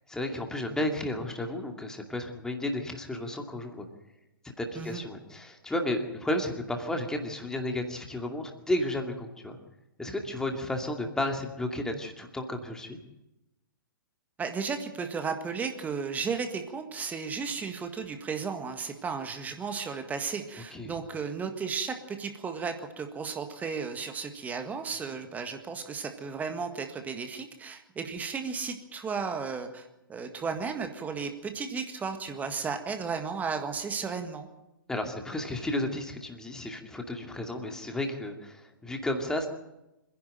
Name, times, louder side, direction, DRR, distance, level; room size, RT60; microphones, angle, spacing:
voice 1, 0.0-3.9 4.4-9.6 10.0-13.0 20.7-21.0 34.9-39.5, left 1 dB, 5° left, 4 dB, 2.4 m, -33 dB
voice 2, 14.4-34.5, right 5 dB, 15° right, 6 dB, 1.8 m, -34 dB
26.0 x 11.0 x 9.0 m, 0.95 s
figure-of-eight pair, 115°, 12 cm